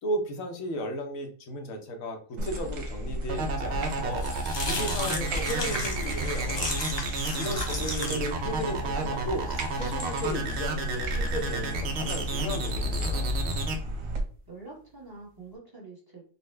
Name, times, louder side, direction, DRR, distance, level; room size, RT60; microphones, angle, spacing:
voice 1, 0.0-4.3 4.6-6.7 7.4-9.5 9.7-13.3, equal, 90° left, 3 dB, 1.2 m, -35 dB
sound 1, 2.4-14.2, equal, 85° right, 1.1 m, -34 dB
sound 2, 3.3-13.7, right 4 dB, 60° right, 0.9 m, -32 dB
sound 3, 3.7-11.9, left 2 dB, 35° left, 0.4 m, -36 dB
voice 2, 7.5-8.5 14.5-16.2, right 4 dB, 20° right, -3 dB, 1.1 m, -46 dB
4.0 x 2.2 x 3.2 m, 0.42 s
omnidirectional pair, 1.3 m